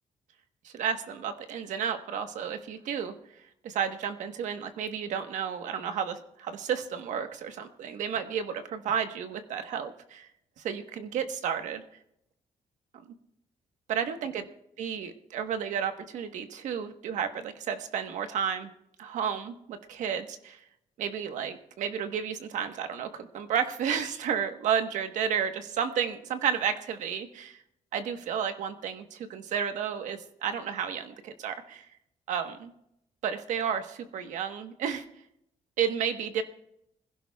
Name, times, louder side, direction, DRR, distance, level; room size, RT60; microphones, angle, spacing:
voice 1, 0.6-3.1 3.6-10.3 10.6-11.8 13.9-14.4 14.8-18.7 19.0-20.6 21.0-27.6 27.9-31.9 32.3-32.7 33.2-35.0 35.8-36.4, right 8 dB, 85° right, 7 dB, 1.2 m, -32 dB
25.5 x 16.0 x 2.3 m, 0.79 s
cardioid pair, 175°, 12 cm